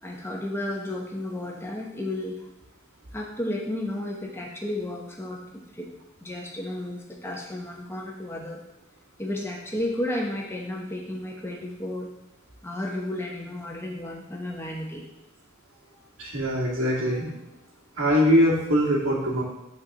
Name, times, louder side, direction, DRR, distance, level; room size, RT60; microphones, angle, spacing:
voice 1, 0.0-2.4 3.1-5.9 6.2-8.6 9.2-12.1 12.6-15.0 15.9-16.0 17.1-17.2, left 1 dB, 10° left, -1 dB, 1.1 m, -33 dB
voice 2, 16.2-17.4 18.0-19.4, equal, 85° right, -4 dB, 2.5 m, -22 dB
6.6 x 4.6 x 6.8 m, 0.90 s
head